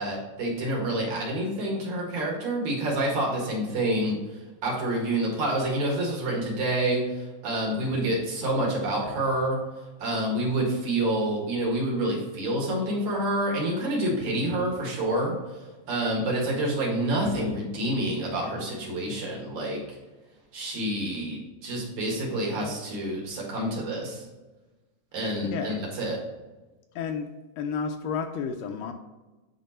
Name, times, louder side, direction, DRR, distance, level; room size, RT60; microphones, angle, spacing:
voice 1, 0.0-4.2 4.6-7.0 7.4-9.6 10.0-15.3 15.9-19.8 20.5-24.3 25.1-26.2, right 1 dB, 60° right, -3 dB, 2.9 m, -28 dB
voice 2, 25.4-25.8 27.0-27.3 27.6-28.9, left 6 dB, 80° left, 6 dB, 2.1 m, -31 dB
9.1 x 4.2 x 4.2 m, 1.2 s
omnidirectional pair, 4.1 m